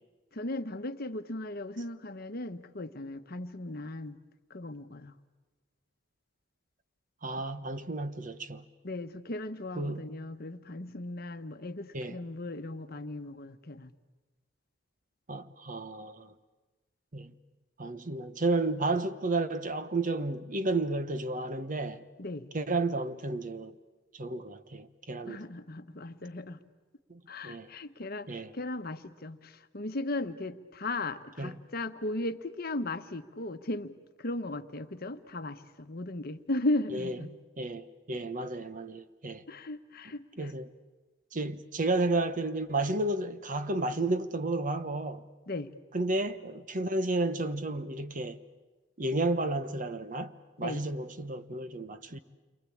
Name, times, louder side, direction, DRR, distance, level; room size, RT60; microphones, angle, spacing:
voice 1, 0.3-4.2 4.5-5.2 7.4-7.5 8.8-13.9 22.2-22.5 25.2-26.6 27.3-33.9 34.2-37.3 39.5-40.5 45.5-45.7 50.6-50.9, left 2 dB, 50° left, 1.1 m, -37 dB
voice 2, 7.2-8.7 9.7-10.1 11.9-12.2 15.3-16.3 17.1-17.3 17.8-22.0 22.5-23.7 24.1-25.4 27.1-27.7 28.3-28.5 31.4-31.6 36.9-37.1 37.6-39.4 40.4-40.7 41.3-45.3 45.9-48.4 49.0-52.2, right 2 dB, 45° right, 1.1 m, -32 dB
29.0 x 24.0 x 8.6 m
head